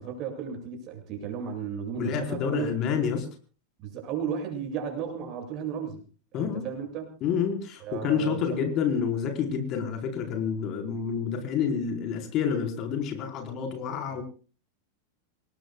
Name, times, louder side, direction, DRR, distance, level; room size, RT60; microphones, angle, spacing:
voice 1, 0.0-2.7 3.8-6.0 6.3-7.1 7.8-8.6 14.1-14.2, right 7 dB, 35° right, 3 dB, 7.8 m, -34 dB
voice 2, 2.0-3.3 6.3-6.6 7.2-14.2, left 7 dB, 35° left, 4 dB, 4.6 m, -28 dB
28.0 x 19.5 x 2.4 m, 0.39 s
figure-of-eight pair, 90°, 0 cm